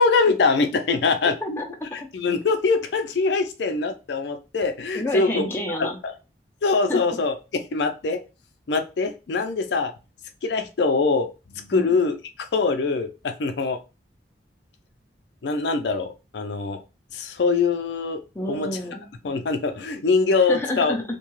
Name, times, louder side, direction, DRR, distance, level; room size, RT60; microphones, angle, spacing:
voice 1, 0.0-1.6 1.9-5.5 5.8-6.1 6.6-7.4 7.7-8.2 8.7-9.9 10.4-13.8 15.4-16.8 17.1-18.2 18.5-18.7 19.2-21.0, left 4 dB, 75° left, 6 dB, 0.4 m, -23 dB
voice 2, 1.4-2.1 4.9-6.0 6.9-7.0 11.7-11.9 18.3-19.0 20.5-21.0, left 1 dB, 15° left, 1 dB, 0.5 m, -29 dB
2.7 x 2.2 x 3.0 m, 0.29 s
head